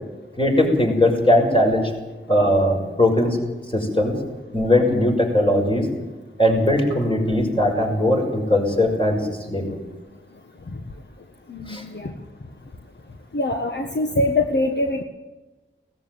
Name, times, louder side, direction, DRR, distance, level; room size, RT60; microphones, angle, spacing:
voice 1, 0.4-1.9 2.3-3.4 3.7-4.1 4.5-5.9 6.4-9.8 11.7-11.8, left 1 dB, 25° left, 0 dB, 6.2 m, -19 dB
voice 2, 11.5-12.1 13.3-15.0, left 2 dB, 55° left, 5 dB, 1.5 m, -23 dB
18.5 x 14.5 x 9.6 m, 1.2 s
wide cardioid pair, 60°, 21 cm